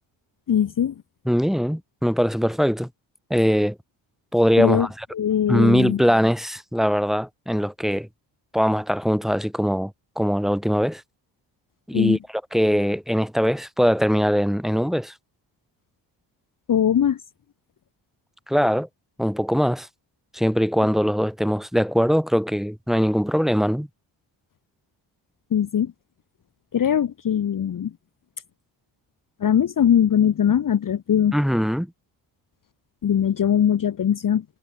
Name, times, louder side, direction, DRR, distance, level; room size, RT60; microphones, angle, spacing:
voice 1, 0.5-0.9 4.6-4.9 5.1-6.0 11.9-12.2 16.7-17.2 25.5-25.9 26.7-27.9 29.4-31.3 33.0-34.4, left 9 dB, 40° left, 1.1 m, -21 dB
voice 2, 1.2-2.9 3.3-3.8 4.3-5.1 5.5-8.1 8.5-9.9 10.2-11.0 11.9-12.2 12.5-15.1 18.5-18.9 19.2-19.9 20.3-23.9 31.3-31.9, equal, ahead, 2.9 m, -21 dB
supercardioid pair, 55°, 48 cm